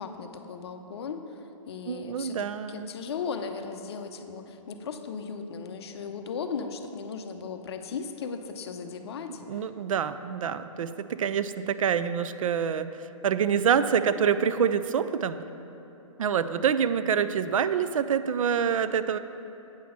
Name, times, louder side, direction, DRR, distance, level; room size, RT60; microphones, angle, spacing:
voice 1, 0.0-9.7, left 5 dB, 50° left, 7 dB, 0.7 m, -37 dB
voice 2, 1.9-2.9 9.5-15.4 16.2-19.2, right 7 dB, 75° right, 13 dB, 0.4 m, -26 dB
8.6 x 6.0 x 5.8 m, 2.9 s
hypercardioid pair, 160°, 17 cm